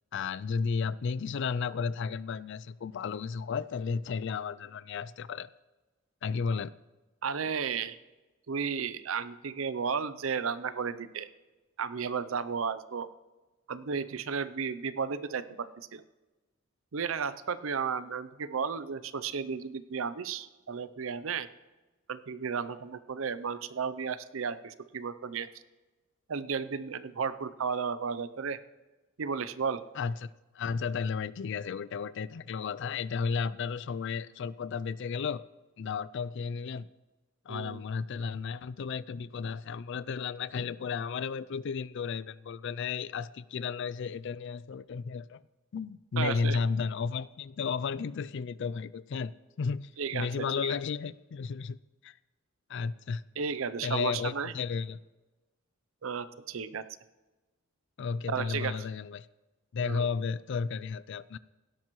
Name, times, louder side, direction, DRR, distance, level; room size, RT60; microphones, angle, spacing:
voice 1, 0.1-5.5 6.2-6.7 29.9-35.4 35.8-36.9 37.5-45.4 45.7-51.8 52.0-52.2 52.7-53.2 53.8-55.0 58.0-59.3 59.7-61.4, left 5 dB, 60° left, 18 dB, 0.4 m, -33 dB
voice 2, 7.2-8.0 8.5-11.3 11.8-13.1 13.7-16.0 16.9-21.5 22.1-25.5 26.3-28.6 29.2-29.8 37.5-37.8 46.2-46.6 50.0-50.3 50.6-50.7 53.4-54.5 56.0-56.9 58.3-58.7 59.8-60.1, right 6 dB, 80° right, 14 dB, 0.6 m, -33 dB
17.0 x 12.0 x 3.1 m, 1.2 s
head